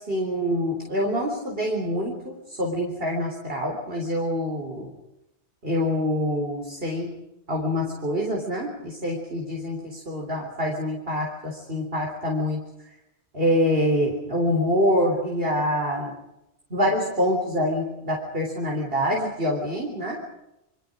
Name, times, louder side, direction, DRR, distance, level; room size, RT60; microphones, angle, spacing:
voice 1, 0.0-4.9 5.6-7.2 7.5-12.6 13.3-16.2 16.7-20.2, equal, 60° right, 0 dB, 4.0 m, -26 dB
29.0 x 25.0 x 5.1 m, 0.88 s
omnidirectional pair, 1.1 m